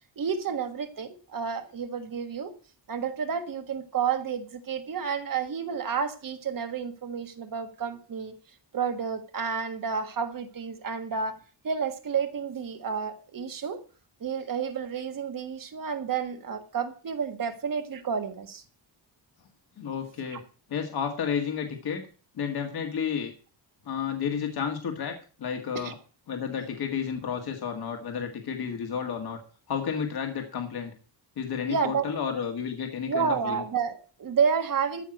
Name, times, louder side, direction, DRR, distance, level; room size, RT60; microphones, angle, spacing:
voice 1, 0.2-2.5 2.9-8.3 8.7-11.4 11.6-13.8 14.2-18.6 20.2-20.4 25.7-25.9 31.7-32.1 33.1-35.0, right 6 dB, 45° right, 7 dB, 1.6 m, -30 dB
voice 2, 19.8-20.4 20.7-22.0 22.4-23.3 23.9-25.1 25.4-26.0 26.3-29.4 29.7-30.9 31.4-33.6, left 7 dB, 55° left, 4 dB, 1.9 m, -31 dB
14.0 x 5.8 x 7.8 m, 0.38 s
wide cardioid pair, 180°, 44 cm